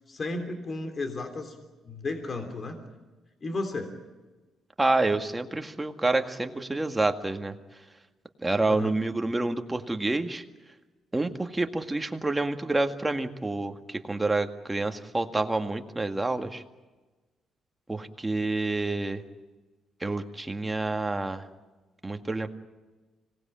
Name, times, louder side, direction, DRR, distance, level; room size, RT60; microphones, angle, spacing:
voice 1, 0.1-1.5 1.8-2.8 3.4-3.9 8.7-8.9, left 2 dB, 40° left, 6 dB, 3.3 m, -33 dB
voice 2, 4.8-7.5 8.4-10.4 11.1-16.6 17.9-19.2 20.0-21.4 22.0-22.5, right 2 dB, 15° right, 6 dB, 1.9 m, -28 dB
25.5 x 19.5 x 8.9 m, 1.2 s
cardioid pair, 90°, 0 cm